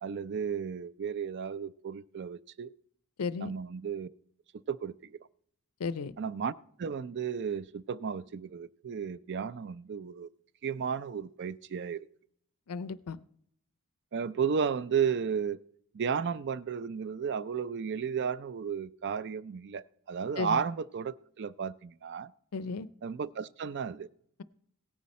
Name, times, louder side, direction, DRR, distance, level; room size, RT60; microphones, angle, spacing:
voice 1, 0.0-2.7 3.4-4.1 4.7-4.9 6.2-6.5 6.8-10.3 10.6-12.1 14.1-15.6 15.9-22.3 23.0-24.1, right 6 dB, 50° right, 0.4 m, -33 dB
voice 2, 3.2-3.5 5.8-6.1 12.7-13.2 20.4-20.6 22.5-22.9, left 5 dB, 85° left, 0.5 m, -34 dB
17.0 x 9.6 x 4.2 m
head